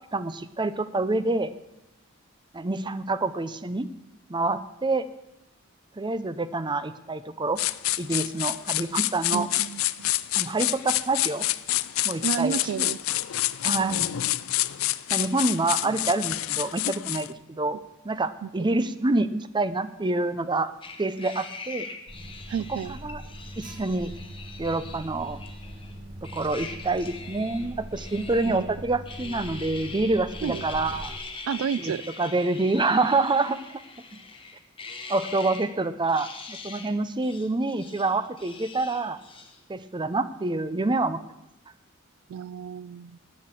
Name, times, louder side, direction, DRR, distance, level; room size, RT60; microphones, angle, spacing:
voice 1, 0.1-1.5 2.5-3.9 4.3-5.1 6.0-7.6 8.0-9.5 10.4-11.4 12.0-12.9 13.6-14.1 15.1-20.7 21.0-21.9 22.7-23.2 23.6-24.1 24.6-25.4 26.2-31.2 31.8-33.6 35.1-39.2 39.7-41.2, right 2 dB, 20° right, 13 dB, 0.6 m, -27 dB
sound 1, 7.6-17.3, left 16 dB, 75° left, 0.4 m, -27 dB
voice 2, 9.3-10.1 12.2-13.0 13.8-14.0 18.4-18.8 22.5-23.0 28.5-28.7 30.4-30.6 31.5-32.0 42.3-43.2, right 7 dB, 80° right, 20 dB, 0.3 m, -31 dB
sound 2, 20.8-25.9 26.2-28.7 29.0-35.7 36.0-37.0 37.2-39.6, left 4 dB, 25° left, 1.3 m, -42 dB
Alarm, 22.1-31.2, equal, 40° right, 1.8 m, -41 dB
11.0 x 8.5 x 7.5 m, 0.91 s
head